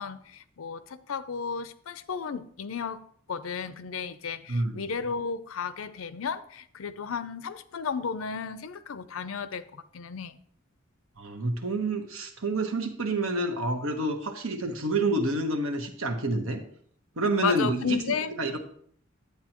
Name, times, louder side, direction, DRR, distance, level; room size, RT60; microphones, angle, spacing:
voice 1, 0.0-3.0 3.3-10.4 17.4-18.3, left 6 dB, 85° left, 0.5 m, -33 dB
voice 2, 11.2-16.6 17.2-18.0 18.3-18.6, right 2 dB, 85° right, 1.2 m, -28 dB
10.5 x 8.4 x 3.0 m
head